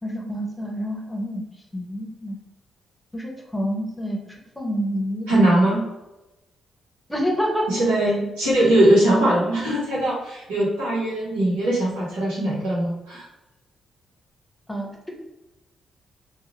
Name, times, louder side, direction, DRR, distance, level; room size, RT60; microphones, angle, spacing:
voice 1, 0.0-1.4 1.7-2.4 3.1-5.3 7.1-7.7 14.7-15.1, equal, 15° left, 0 dB, 0.9 m, -28 dB
voice 2, 5.3-5.8 7.7-13.3, right 1 dB, 80° right, -7 dB, 1.1 m, -20 dB
2.4 x 2.3 x 3.1 m, 0.97 s
hypercardioid pair, 40°, 0 cm